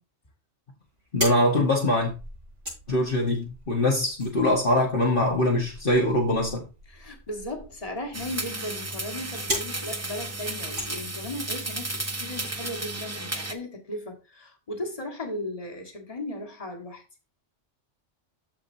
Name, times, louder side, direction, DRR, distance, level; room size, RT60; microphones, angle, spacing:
sound 1, 0.8-11.7, equal, 90° right, 5.9 m, -39 dB
voice 1, 1.1-2.1 2.9-6.6, left 1 dB, 45° left, 1.7 m, -23 dB
voice 2, 6.9-17.0, left 1 dB, 30° left, 1.9 m, -36 dB
sound 2, 8.1-13.5, right 2 dB, 15° right, 0.6 m, -33 dB
14.0 x 4.9 x 2.7 m
omnidirectional pair, 1.2 m